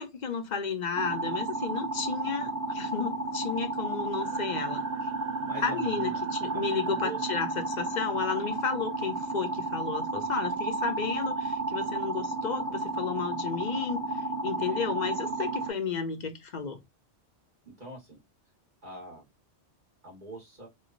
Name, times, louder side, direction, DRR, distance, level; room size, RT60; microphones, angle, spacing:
voice 1, 0.0-5.1 5.6-16.8, left 5 dB, 50° left, 0.6 m, -33 dB
sound 1, 1.0-15.7, right 2 dB, 15° right, 0.6 m, -32 dB
sound 2, 4.2-10.1, right 4 dB, 60° right, 1.1 m, -52 dB
voice 2, 5.4-6.2 6.5-7.2 11.0-11.2 14.7-14.8 17.6-18.2 18.8-19.3 20.0-20.7, right 3 dB, 45° right, 1.3 m, -42 dB
3.0 x 2.2 x 3.8 m
omnidirectional pair, 1.1 m